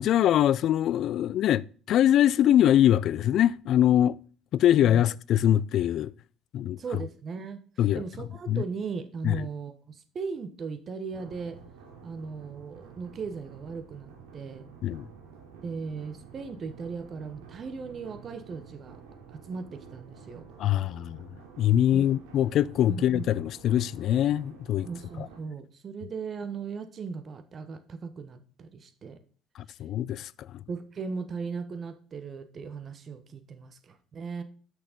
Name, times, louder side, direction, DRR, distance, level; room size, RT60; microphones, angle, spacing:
voice 1, 0.0-4.2 4.5-6.1 6.5-6.8 7.8-8.0 8.5-8.6 9.2-9.4 14.8-15.0 20.6-21.2 21.6-24.9 29.8-30.3, left 11 dB, 65° left, 0.3 m, -23 dB
voice 2, 6.8-7.6 7.9-11.6 12.0-14.6 15.6-19.0 19.5-20.4 21.9-22.1 22.9-23.3 24.8-29.2 30.7-34.4, right 5 dB, 45° right, 1.2 m, -37 dB
sound 1, 11.1-25.4, right 6 dB, 90° right, 1.6 m, -50 dB
6.3 x 6.2 x 5.2 m
supercardioid pair, 70°, 0 cm